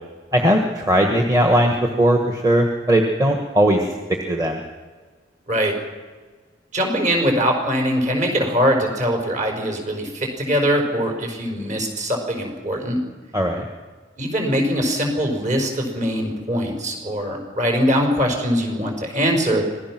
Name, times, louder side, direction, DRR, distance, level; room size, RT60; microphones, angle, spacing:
voice 1, 0.3-3.8 4.3-4.6 13.3-13.6, right 1 dB, 20° right, 2 dB, 1.6 m, -18 dB
voice 2, 6.7-13.0 14.2-19.6, equal, 40° right, 2 dB, 5.0 m, -22 dB
26.0 x 18.5 x 6.2 m, 1.4 s
head